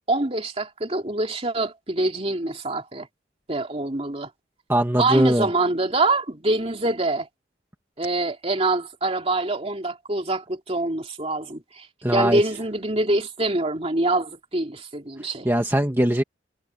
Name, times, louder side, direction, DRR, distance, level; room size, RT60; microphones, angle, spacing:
voice 1, 0.1-3.1 3.5-4.3 5.0-7.3 8.0-11.9 12.1-15.5, right 2 dB, 30° right, 3.0 m, -25 dB
voice 2, 4.7-5.5 12.0-12.4 15.4-16.2, right 1 dB, 10° right, 1.5 m, -20 dB
head